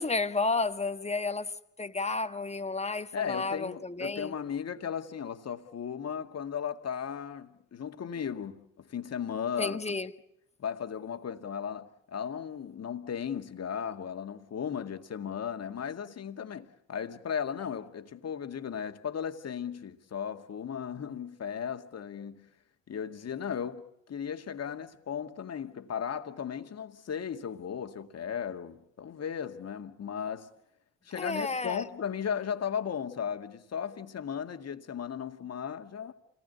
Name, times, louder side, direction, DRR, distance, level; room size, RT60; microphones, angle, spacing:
voice 1, 0.0-1.5 1.8-4.3 9.6-10.1 31.1-31.9, left 3 dB, 15° left, 1.5 m, -31 dB
voice 2, 3.1-9.8 10.6-22.5 22.9-30.5 31.0-36.1, left 7 dB, 40° left, 2.1 m, -36 dB
28.5 x 19.5 x 8.2 m
hypercardioid pair, 55°, 39 cm